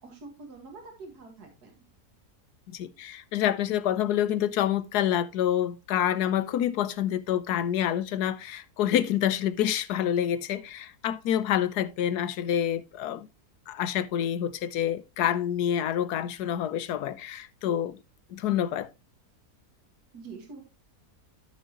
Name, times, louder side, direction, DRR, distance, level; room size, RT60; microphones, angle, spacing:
voice 1, 0.0-1.8 20.1-20.6, right 4 dB, 75° right, 2.4 m, -45 dB
voice 2, 2.7-13.3 13.7-18.0 18.3-18.9, left 10 dB, 80° left, 1.3 m, -27 dB
12.5 x 6.3 x 3.0 m
omnidirectional pair, 1.7 m